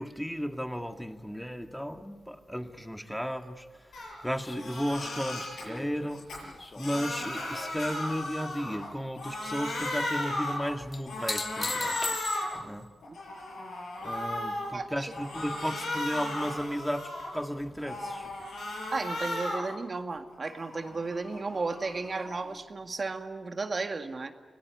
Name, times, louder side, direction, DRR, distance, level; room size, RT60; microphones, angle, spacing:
voice 1, 0.0-6.5 6.8-12.2 12.5-12.9 14.0-18.3, equal, 5° left, 6 dB, 2.1 m, -34 dB
Crying sobbing, 3.9-4.1 4.5-5.6 6.1-8.9 9.1-10.7 11.1-12.6 13.0-14.7 15.1-17.4 17.8-19.7 20.1-22.5, left 1 dB, 85° left, 6.9 m, -36 dB
sound 1, 4.4-7.9 8.2-8.8 10.9-12.8 15.4-15.5, left 3 dB, 40° left, 1.5 m, -39 dB
voice 2, 14.7-15.1 18.9-24.3, right 3 dB, 50° right, 7 dB, 2.0 m, -34 dB
26.0 x 18.0 x 9.9 m, 1.4 s
cardioid pair, 50°, 0 cm